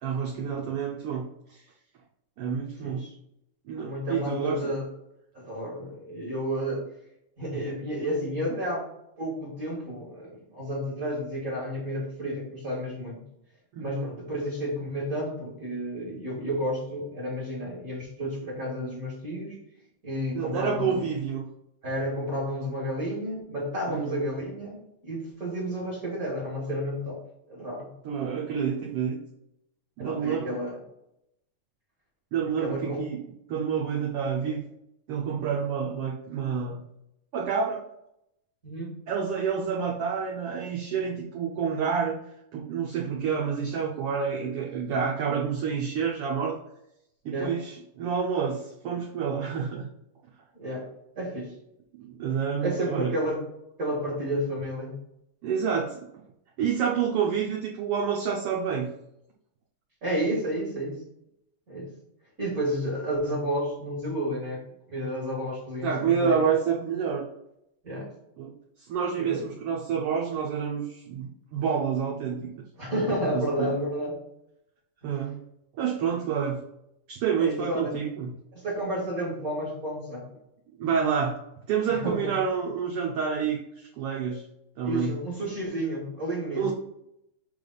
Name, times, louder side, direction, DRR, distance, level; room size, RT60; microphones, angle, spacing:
voice 1, 0.0-1.6 2.4-3.1 3.7-4.6 7.5-7.6 13.8-14.0 20.3-21.4 23.9-24.2 28.0-29.2 30.0-30.6 32.3-33.2 33.5-34.6 35.1-36.8 37.3-37.8 39.1-42.2 42.5-46.6 47.2-49.9 52.0-53.1 55.4-56.1 56.6-58.9 65.8-67.2 68.4-72.6 73.3-73.7 75.0-75.4 75.7-76.6 77.1-78.3 80.8-84.5 84.8-85.2 86.5-86.7, right 6 dB, 80° right, -2 dB, 1.3 m, -28 dB
voice 2, 2.8-3.1 3.7-4.9 5.3-6.8 7.4-8.9 9.2-13.2 13.8-19.6 20.0-21.0 21.8-27.2 27.5-27.9 30.0-30.8 32.4-33.0 38.6-38.9 47.3-47.5 50.5-50.8 51.1-51.5 52.6-53.4 53.8-54.9 60.0-61.0 61.7-61.9 62.4-64.6 64.9-66.4 67.8-68.1 69.2-69.4 72.8-74.2 75.0-75.1 77.4-77.9 78.5-80.2 81.9-82.3 84.8-86.7, equal, 35° right, -5 dB, 1.6 m, -31 dB
6.9 x 3.4 x 4.0 m, 0.80 s
omnidirectional pair, 3.6 m